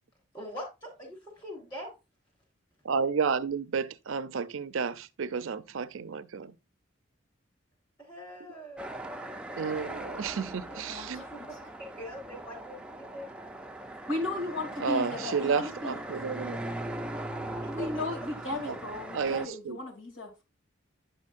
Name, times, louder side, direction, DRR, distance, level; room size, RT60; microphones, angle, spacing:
voice 1, 0.3-1.9 8.0-9.0 11.3-11.4 11.8-13.3 17.6-18.0, equal, 20° left, 3.3 m, -42 dB
voice 2, 2.8-6.6 9.6-11.2 14.8-16.6 18.5-18.8 19.1-19.8, right 5 dB, 85° right, 0.5 m, -31 dB
sound 1, 8.8-19.5, right 1 dB, 5° right, 0.4 m, -40 dB
voice 3, 10.9-11.3 14.1-16.0 17.6-20.4, left 2 dB, 80° left, 2.7 m, -35 dB
8.9 x 6.4 x 2.5 m
head